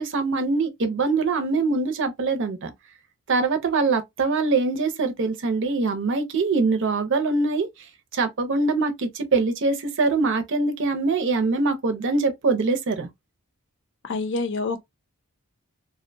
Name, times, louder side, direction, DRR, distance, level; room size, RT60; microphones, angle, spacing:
voice 1, 0.0-2.7 3.3-7.9 8.1-13.1, right 3 dB, 55° right, 0.6 m, -23 dB
voice 2, 14.0-14.8, left 3 dB, 55° left, 0.5 m, -26 dB
2.5 x 2.1 x 2.6 m
head